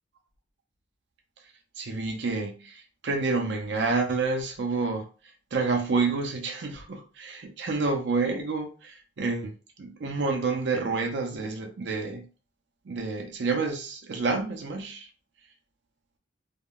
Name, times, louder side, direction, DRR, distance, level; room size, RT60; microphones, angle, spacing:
voice 1, 1.8-5.1 5.5-9.5 9.8-12.2 12.9-15.1, right 3 dB, 70° right, 0.5 m, -29 dB
3.4 x 2.1 x 2.3 m
head